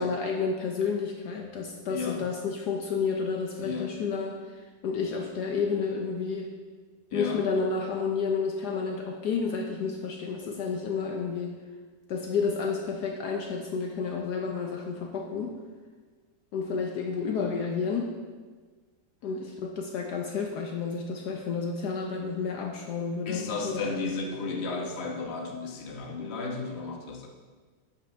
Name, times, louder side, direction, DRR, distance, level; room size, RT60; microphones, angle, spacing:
voice 1, 0.0-6.5 7.1-11.5 12.1-15.6 16.5-18.2 19.2-23.7, left 5 dB, 70° left, 2 dB, 1.3 m, -30 dB
voice 2, 1.9-2.3 3.6-3.9 7.1-7.4 23.2-27.3, left 4 dB, 40° left, 2 dB, 1.2 m, -33 dB
11.0 x 8.9 x 3.4 m, 1.5 s
omnidirectional pair, 2.0 m